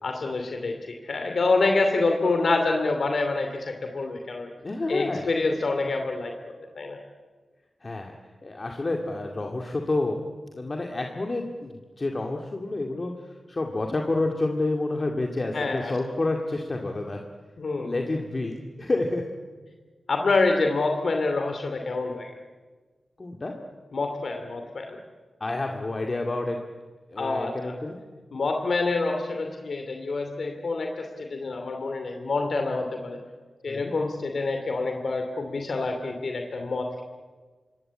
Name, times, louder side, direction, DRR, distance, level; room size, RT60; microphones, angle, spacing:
voice 1, 0.0-4.5 4.9-6.3 6.6-7.0 15.5-15.9 17.6-18.0 20.1-22.3 23.9-25.0 27.2-27.7 28.3-33.2 33.6-37.0, left 3 dB, 60° left, 4 dB, 2.7 m, -27 dB
voice 2, 4.6-5.3 7.8-8.1 8.4-10.2 10.5-13.1 13.5-17.2 17.8-19.2 23.2-23.5 25.4-26.6 27.1-28.0 33.7-33.9, left 2 dB, 30° left, 2 dB, 2.2 m, -29 dB
26.5 x 22.5 x 8.8 m, 1.4 s
wide cardioid pair, 135°, 0 cm